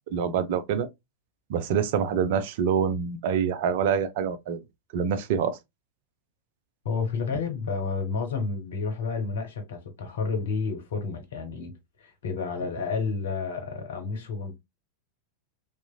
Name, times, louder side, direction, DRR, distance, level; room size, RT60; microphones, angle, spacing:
voice 1, 0.1-0.9 1.5-4.6 4.9-5.6, right 7 dB, 50° right, 0.4 m, -26 dB
voice 2, 6.8-11.7 12.0-14.6, left 4 dB, 60° left, 0.8 m, -30 dB
2.8 x 2.4 x 2.2 m
figure-of-eight pair, 90°, 0 cm